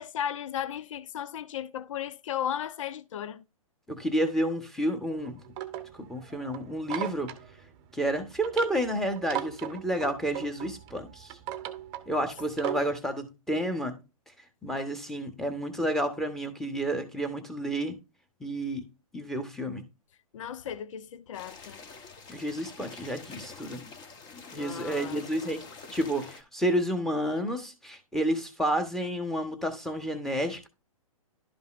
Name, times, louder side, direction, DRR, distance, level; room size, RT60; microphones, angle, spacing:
voice 1, 0.0-3.4 20.3-21.8 24.5-25.3, left 10 dB, 60° left, 0.7 m, -35 dB
voice 2, 3.9-5.4 6.0-7.3 7.9-11.4 12.1-13.9 14.6-17.9 18.4-18.8 19.1-19.8 22.3-23.8 24.5-30.7, right 1 dB, ahead, 1.3 m, -30 dB
sound 1, 5.1-13.0, right 13 dB, 30° right, 0.9 m, -39 dB
sound 2, 21.3-26.4, left 4 dB, 20° left, 1.2 m, -46 dB
12.0 x 5.4 x 2.6 m
hypercardioid pair, 135°, 18 cm